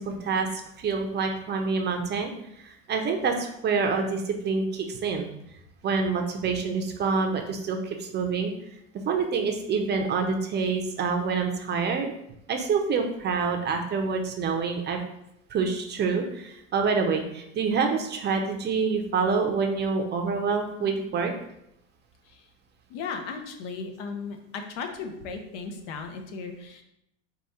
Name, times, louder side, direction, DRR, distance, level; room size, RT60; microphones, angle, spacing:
voice 1, 0.0-5.3 5.8-8.5 9.1-12.1 12.5-15.0 15.5-21.3, right 5 dB, 30° right, 4 dB, 0.6 m, -27 dB
voice 2, 22.9-26.8, left 5 dB, 70° left, 5 dB, 0.9 m, -36 dB
4.8 x 2.3 x 4.2 m, 0.77 s
supercardioid pair, 115°, 37 cm